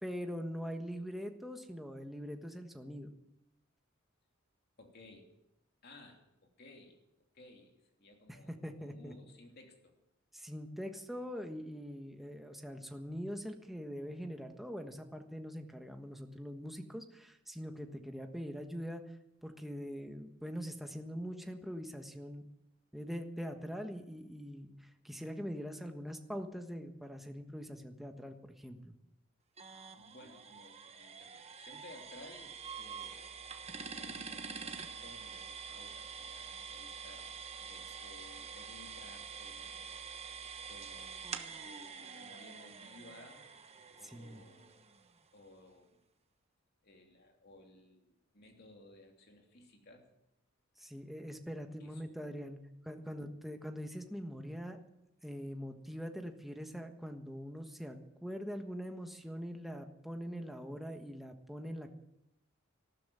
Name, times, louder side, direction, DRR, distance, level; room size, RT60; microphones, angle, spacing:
voice 1, 0.0-3.1 8.3-9.1 10.3-19.0 19.4-22.4 22.9-28.9 44.0-44.4 50.8-52.6 52.8-54.8 55.2-61.9, equal, ahead, 4 dB, 1.4 m, -43 dB
voice 2, 4.8-5.3 5.8-7.0 7.3-7.7 8.0-9.9 30.0-33.4 33.9-37.3 37.6-40.0 40.6-43.4 44.0-44.7 45.3-46.0 46.8-50.0 51.8-52.0 53.0-53.1, left 2 dB, 50° left, 2 dB, 3.0 m, -57 dB
sound 1, 29.6-45.2, right 6 dB, 30° right, 1.1 m, -46 dB
14.5 x 12.5 x 7.5 m, 0.87 s
head